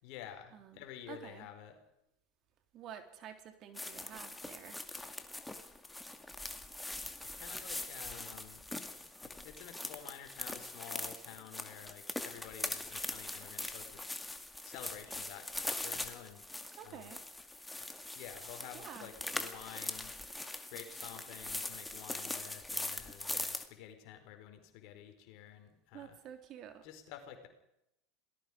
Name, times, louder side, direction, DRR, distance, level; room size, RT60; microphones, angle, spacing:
voice 1, 0.0-1.8 7.2-8.6 9.2-14.1 14.6-16.4 16.8-17.1 18.1-20.1 20.7-26.2 26.8-27.5, left 10 dB, 60° left, 6 dB, 4.5 m, -50 dB
voice 2, 1.1-1.5 2.7-4.8 16.7-17.2 18.7-19.1 25.9-26.9, right 9 dB, 45° right, 7 dB, 3.2 m, -49 dB
sound 1, 3.8-23.7, left 2 dB, 10° left, 2.3 m, -42 dB
27.0 x 19.0 x 5.1 m, 0.83 s
hypercardioid pair, 85°, 0 cm